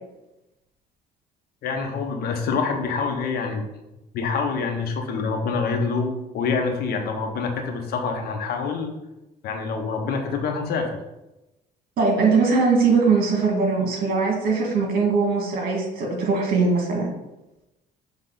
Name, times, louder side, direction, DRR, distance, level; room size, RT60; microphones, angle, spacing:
voice 1, 1.6-3.6 4.1-8.9 9.4-10.9, left 4 dB, 65° left, 4 dB, 1.1 m, -26 dB
voice 2, 12.0-17.1, right 4 dB, 60° right, 0 dB, 2.1 m, -21 dB
6.4 x 3.6 x 4.0 m, 0.96 s
cardioid pair, 110°, 17 cm